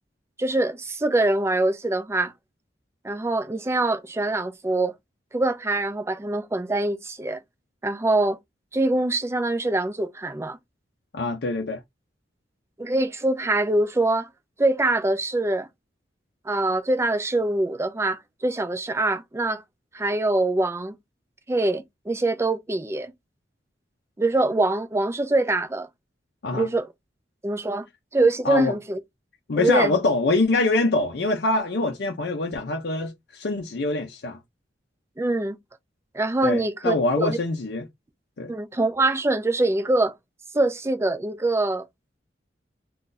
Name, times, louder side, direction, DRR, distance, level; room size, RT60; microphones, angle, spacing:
voice 1, 0.4-2.3 3.0-4.9 5.3-7.4 7.8-8.4 8.7-10.6 12.8-14.3 14.6-15.7 16.5-19.6 19.9-21.0 21.5-23.1 24.2-25.9 26.5-26.9 27.4-27.9 28.1-29.0 29.6-29.9 35.2-35.6 36.1-37.4 38.5-40.2 40.5-41.9, right 2 dB, 15° right, 0.4 m, -24 dB
voice 2, 11.1-11.8 26.4-26.7 28.4-28.7 29.5-34.4 36.4-37.9 38.4-38.5, left 2 dB, 65° left, 0.6 m, -24 dB
2.6 x 2.3 x 3.8 m
head